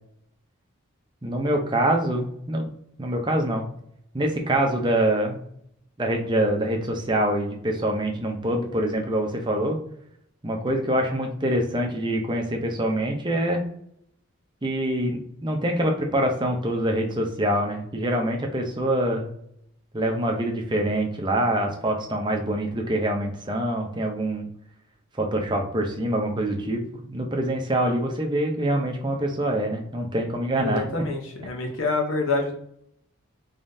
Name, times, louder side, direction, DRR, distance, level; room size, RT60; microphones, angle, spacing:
voice 1, 1.2-2.7 3.0-3.7 4.1-5.4 6.0-9.8 10.4-13.6 14.6-19.3 19.9-24.5 25.2-30.8, right 1 dB, 20° right, 1 dB, 0.6 m, -25 dB
voice 2, 30.6-32.5, left 3 dB, 65° left, 1 dB, 0.8 m, -27 dB
3.7 x 3.6 x 2.7 m, 0.71 s
head